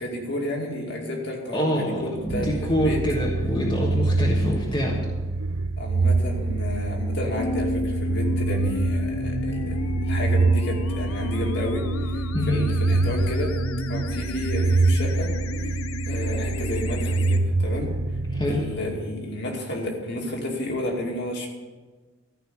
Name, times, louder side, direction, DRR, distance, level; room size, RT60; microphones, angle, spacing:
voice 1, 0.0-3.0 5.8-13.5 13.9-15.3 16.1-17.9 18.5-21.5, left 1 dB, 50° left, 0 dB, 2.4 m, -31 dB
voice 2, 1.5-5.0 12.3-12.6 18.4-18.6, left 1 dB, 20° left, -3 dB, 1.4 m, -25 dB
sound 1, 2.2-19.1, right 3 dB, 90° right, 0.6 m, -25 dB
sound 2, 7.4-17.4, left 4 dB, 75° left, 0.6 m, -33 dB
14.0 x 5.6 x 9.1 m, 1.3 s
head